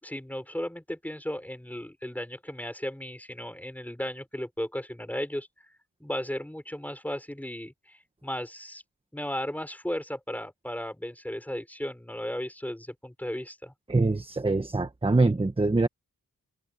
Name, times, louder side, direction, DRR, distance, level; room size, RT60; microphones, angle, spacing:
voice 1, 0.0-5.5 6.0-8.8 9.1-13.7, equal, 5° left, 6.5 m, -35 dB
voice 2, 13.9-15.9, right 3 dB, 15° right, 1.3 m, -24 dB
wide cardioid pair, 140°, 33 cm